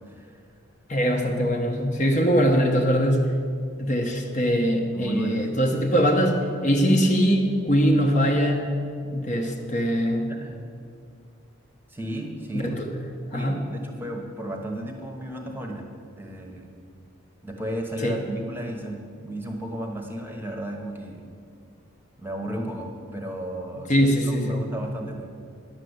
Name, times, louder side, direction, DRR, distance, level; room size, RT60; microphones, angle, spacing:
voice 1, 0.1-0.4 4.9-5.5 10.3-10.6 11.9-12.8 13.3-15.9 16.1-16.7 17.4-21.3 22.2-25.3, right 1 dB, 10° right, 2 dB, 1.0 m, -34 dB
voice 2, 0.9-3.3 3.8-8.7 9.1-10.3 12.5-12.9 13.3-13.6 18.0-18.2 23.9-24.6, equal, 35° left, 3 dB, 0.9 m, -22 dB
10.5 x 6.8 x 8.0 m, 2.3 s
head